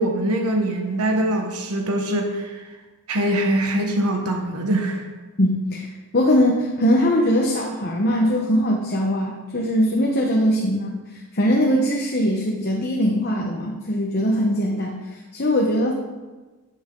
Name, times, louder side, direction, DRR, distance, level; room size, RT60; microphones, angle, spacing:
voice 1, 0.0-2.6 3.1-5.1, right 1 dB, 85° right, 3 dB, 1.2 m, -23 dB
voice 2, 5.4-5.9 6.1-15.0 15.3-15.9, equal, 45° left, -1 dB, 1.0 m, -21 dB
13.0 x 6.9 x 3.8 m, 1.3 s
head